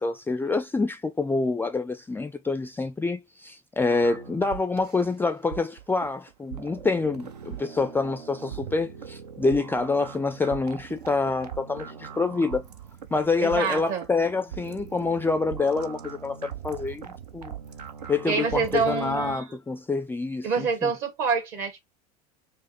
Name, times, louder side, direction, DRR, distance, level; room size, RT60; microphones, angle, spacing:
voice 1, 0.0-12.7 13.1-17.5 18.1-20.9, left 3 dB, 10° left, 0.3 m, -27 dB
sound 1, 3.9-19.4, right 8 dB, 80° right, 0.5 m, -41 dB
voice 2, 13.4-14.0 18.2-19.4 20.4-21.8, right 5 dB, 55° right, 1.4 m, -26 dB
5.3 x 2.1 x 2.9 m
figure-of-eight pair, 70°, 20 cm